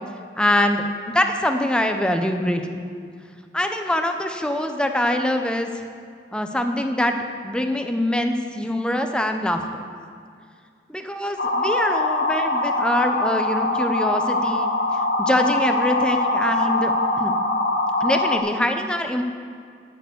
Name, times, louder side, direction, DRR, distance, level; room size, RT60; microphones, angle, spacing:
voice 1, 0.4-2.8 3.5-5.7 6.3-7.2 7.4-9.6 10.9-14.7 15.2-17.3 18.0-19.2, left 1 dB, 5° left, 5 dB, 0.7 m, -23 dB
sound 1, 11.4-18.4, left 2 dB, 60° left, 1.4 m, -23 dB
12.5 x 6.9 x 8.1 m, 2.2 s
head